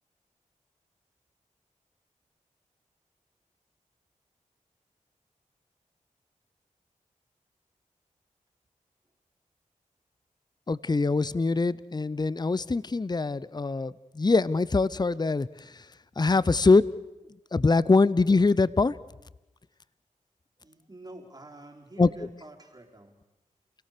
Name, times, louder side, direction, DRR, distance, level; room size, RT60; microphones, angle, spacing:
voice 1, 10.7-15.8 16.2-16.8 17.5-19.0 22.0-22.1, left 3 dB, 30° left, 20 dB, 0.7 m, -23 dB
voice 2, 20.6-23.2, right 1 dB, 30° right, 1 dB, 4.6 m, -48 dB
29.5 x 18.0 x 6.8 m, 1.0 s
cardioid pair, 45°, 14 cm